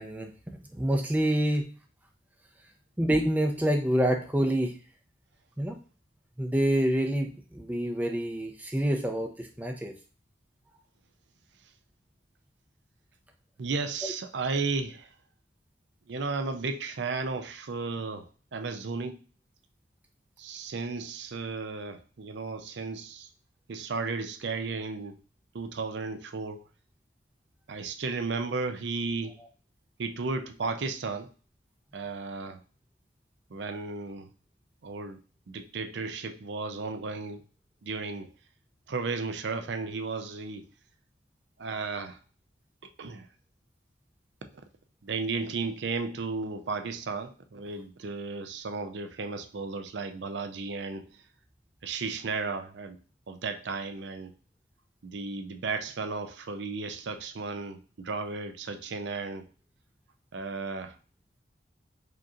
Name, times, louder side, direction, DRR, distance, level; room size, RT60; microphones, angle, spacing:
voice 1, 0.0-1.6 3.0-4.7 5.6-5.8 6.4-9.9, right 1 dB, 10° right, 0.6 m, -27 dB
voice 2, 13.6-15.1 16.1-19.2 20.4-23.3 23.7-25.2 25.5-26.6 27.7-29.4 30.0-31.3 31.9-32.6 33.5-34.3 34.8-35.2 35.5-37.4 37.8-38.3 38.9-40.7 41.6-42.2 43.0-43.3 45.0-51.1 51.8-53.0 53.3-54.3 55.0-59.4 60.3-60.9, right 4 dB, 65° right, 0.5 m, -34 dB
5.0 x 2.9 x 2.4 m
head